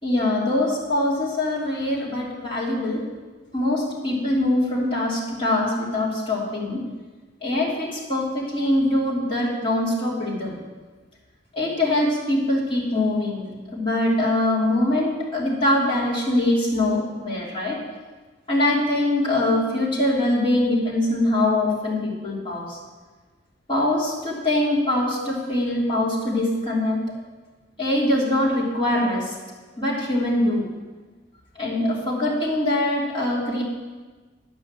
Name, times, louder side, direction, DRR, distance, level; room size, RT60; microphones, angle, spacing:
voice 1, 0.0-3.0 3.5-6.8 7.4-10.6 11.5-17.8 18.5-22.8 23.7-27.0 27.8-29.3 29.8-30.6 31.5-33.6, left 1 dB, 25° left, -7 dB, 2.9 m, -23 dB
10.5 x 5.5 x 7.4 m, 1.3 s
head